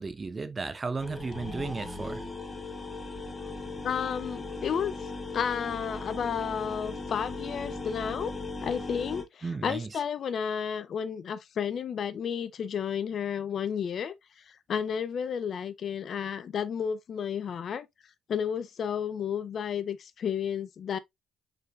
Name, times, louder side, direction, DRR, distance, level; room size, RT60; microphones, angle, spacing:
voice 1, 0.0-2.2 9.4-9.9, right 4 dB, 35° right, 0.7 m, -34 dB
sound 1, 1.0-9.2, left 3 dB, 20° left, 1.9 m, -38 dB
voice 2, 3.8-8.3 8.6-17.9 18.3-21.0, left 7 dB, 60° left, 0.5 m, -32 dB
5.7 x 3.8 x 2.4 m
supercardioid pair, 55°, 0 cm